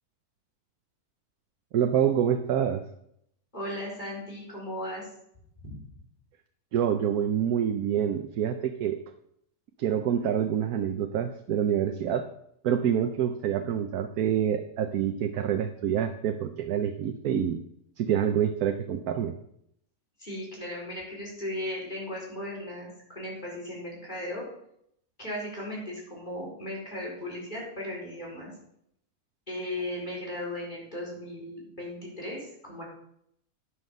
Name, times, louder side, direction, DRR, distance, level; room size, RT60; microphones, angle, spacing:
voice 1, 1.7-2.8 6.7-9.0 9.8-12.3 12.6-17.6 18.0-19.3, right 9 dB, 85° right, 7 dB, 1.2 m, -27 dB
voice 2, 3.5-5.1 5.6-5.7 20.2-24.4 25.2-28.5 29.5-32.8, left 1 dB, 30° left, -4 dB, 4.6 m, -36 dB
10.0 x 7.8 x 5.3 m, 0.74 s
omnidirectional pair, 1.5 m